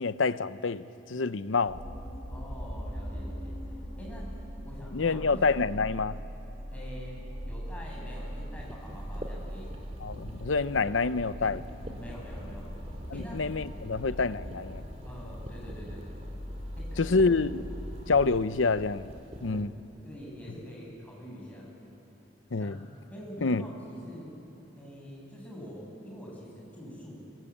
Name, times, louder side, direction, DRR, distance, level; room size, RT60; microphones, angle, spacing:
voice 1, 0.0-1.8 4.9-6.2 10.0-11.6 13.1-14.8 17.0-17.6 18.1-19.1 19.4-19.7 22.5-22.9 23.4-23.6, left 4 dB, 85° left, 0.8 m, -27 dB
sound 1, 1.7-18.3, equal, 45° left, 5.6 m, -41 dB
voice 2, 2.3-3.5 4.0-4.3 4.6-5.6 6.7-9.7 11.9-12.7 13.1-13.5 15.0-16.2 16.8-17.3 19.4-21.7 22.5-22.8 23.1-24.3 24.8-27.2, equal, 10° left, 8.0 m, -45 dB
sound 2, 8.6-19.6, equal, 35° right, 2.4 m, -45 dB
27.5 x 21.5 x 8.6 m
head